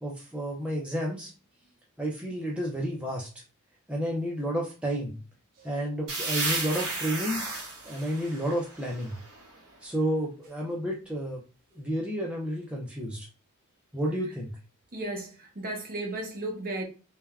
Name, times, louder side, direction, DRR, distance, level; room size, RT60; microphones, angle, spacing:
voice 1, 0.0-1.3 2.0-3.3 3.9-5.2 5.6-7.5 7.9-9.2 9.8-11.4 11.8-13.3 13.9-14.5, equal, 5° right, 0.4 m, -31 dB
sound 1, 6.1-9.7, right 3 dB, 75° right, 1.3 m, -33 dB
voice 2, 14.9-16.8, right 1 dB, 40° right, 0.7 m, -34 dB
3.3 x 2.1 x 2.2 m
head